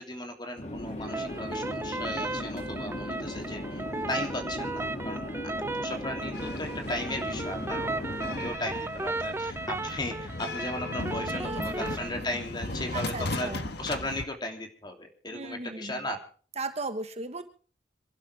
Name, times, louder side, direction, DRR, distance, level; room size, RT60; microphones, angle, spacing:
voice 1, 0.0-16.2, left 1 dB, 25° left, 4 dB, 3.1 m, -37 dB
Conversation / Chatter / Fixed-wing aircraft airplane, 0.6-8.5, left 1 dB, 40° left, 2.7 m, -37 dB
sound 1, 1.1-12.1, right 2 dB, 15° right, 0.7 m, -35 dB
sound 2, 6.3-14.2, left 2 dB, 60° left, 1.4 m, -37 dB
voice 2, 11.3-11.9 12.9-13.7 15.3-15.9 16.6-17.4, right 3 dB, 35° right, 8 dB, 1.3 m, -36 dB
27.0 x 12.0 x 3.5 m, 0.42 s
head